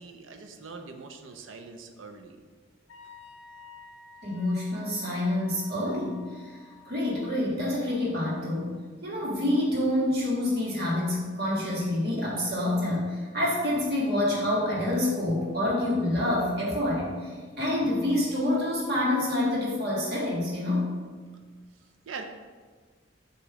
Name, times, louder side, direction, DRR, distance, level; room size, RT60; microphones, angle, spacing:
voice 1, 0.0-2.4 22.1-22.2, right 4 dB, 85° right, 5 dB, 0.6 m, -42 dB
Wind instrument woodwind instrument, 2.9-7.3, left 5 dB, 80° left, 0.6 m, -51 dB
voice 2, 4.2-6.6 6.9-8.7 9.0-20.9, left 1 dB, 55° right, -5 dB, 1.7 m, -27 dB
6.9 x 3.0 x 4.8 m, 1.5 s
head